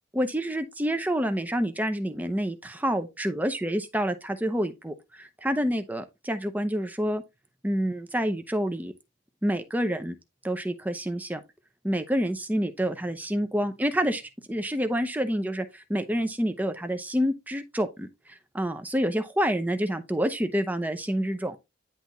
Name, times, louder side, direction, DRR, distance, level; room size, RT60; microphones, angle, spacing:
voice 1, 0.1-7.2 7.6-8.9 9.4-10.2 10.4-11.4 11.8-14.2 14.5-18.1 18.5-21.6, equal, 10° right, 0.7 m, -28 dB
10.0 x 3.5 x 4.1 m
head